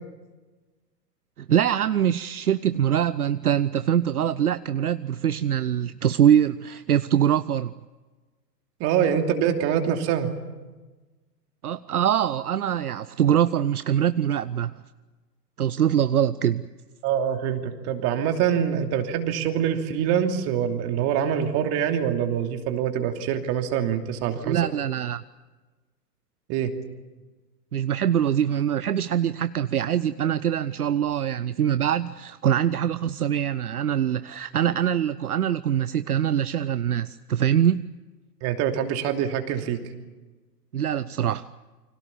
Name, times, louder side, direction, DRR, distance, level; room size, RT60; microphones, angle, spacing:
voice 1, 1.4-7.7 11.6-14.8 15.6-16.7 24.4-25.2 27.7-37.8 40.7-41.5, right 10 dB, 60° right, 14 dB, 0.8 m, -23 dB
voice 2, 8.8-10.3 17.0-24.5 26.5-26.7 38.4-39.8, right 9 dB, 30° right, 5 dB, 2.9 m, -25 dB
29.0 x 25.5 x 7.2 m, 1.3 s
figure-of-eight pair, 110°, 50 cm